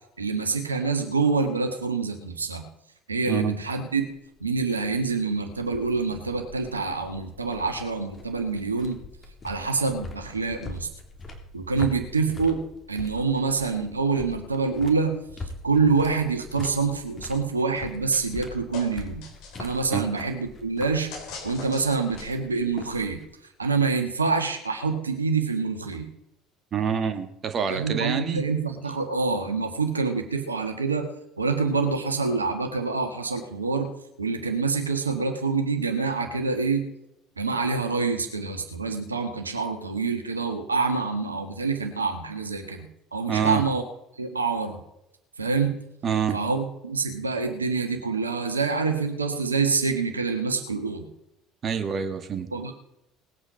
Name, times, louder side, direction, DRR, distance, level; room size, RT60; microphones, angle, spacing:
voice 1, 0.2-2.6 3.1-4.1 4.4-9.0 9.4-10.9 11.5-19.2 19.6-21.1 21.4-23.2 23.6-26.1 27.7-31.1 31.4-33.9 34.2-36.8 37.4-43.8 44.2-44.8 45.4-45.7 46.3-51.1 52.5-52.7, right 4 dB, 80° right, 1.6 m, -26 dB
sound 1, 4.3-23.3, left 3 dB, 25° left, 2.9 m, -43 dB
sound 2, 18.1-18.5 18.7-19.8 21.1-22.5, left 5 dB, 55° left, 3.8 m, -40 dB
voice 2, 26.7-28.4 43.3-43.6 46.0-46.4 51.6-52.5, right 7 dB, 35° right, 1.5 m, -26 dB
19.0 x 8.8 x 5.3 m
figure-of-eight pair, 60°, 0 cm